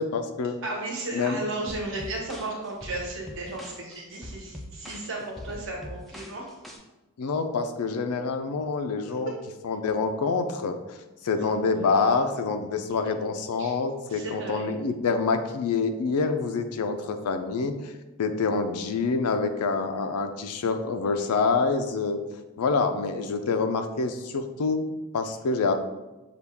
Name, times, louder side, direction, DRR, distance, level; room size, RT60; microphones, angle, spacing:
voice 1, 0.0-0.6 1.1-1.4 7.2-9.3 9.6-11.0 11.2-17.9 18.2-22.2 22.6-24.9 25.1-25.7, left 4 dB, 85° left, 8 dB, 0.4 m, -26 dB
voice 2, 0.6-6.5 11.3-11.5 13.6-13.7 14.1-14.8 23.4-23.6, right 2 dB, 60° right, -2 dB, 1.1 m, -35 dB
sound 1, 1.7-6.8, equal, ahead, 0.3 m, -42 dB
5.7 x 2.3 x 3.4 m, 1.1 s
head